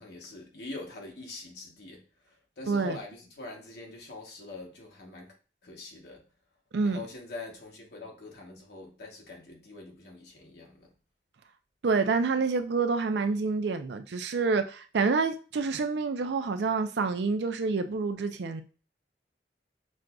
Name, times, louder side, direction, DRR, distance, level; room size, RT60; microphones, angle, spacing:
voice 1, 0.0-2.0 2.6-5.3 5.6-6.2 6.8-10.9, left 3 dB, 65° left, 0.9 m, -44 dB
voice 2, 2.7-3.0 6.7-7.0 11.8-18.6, right 4 dB, 75° right, 0.4 m, -28 dB
6.2 x 2.5 x 2.2 m
head